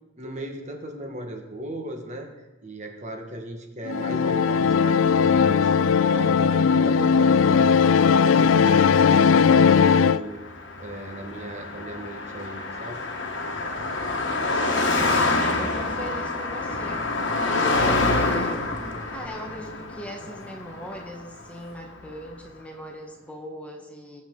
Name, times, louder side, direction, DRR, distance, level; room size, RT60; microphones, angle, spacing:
voice 1, 0.2-2.3 2.6-10.4 10.8-13.0 17.5-18.0, right 1 dB, 40° right, 3 dB, 1.6 m, -37 dB
sound 1, 3.9-10.2, left 6 dB, 90° left, 0.4 m, -18 dB
voice 2, 4.2-5.2 14.9-17.1 17.5-18.6 19.1-24.2, equal, 5° left, 1 dB, 1.5 m, -40 dB
Car passing by, 10.2-21.8, left 2 dB, 65° left, 1.5 m, -27 dB
20.5 x 7.2 x 3.9 m, 1.1 s
head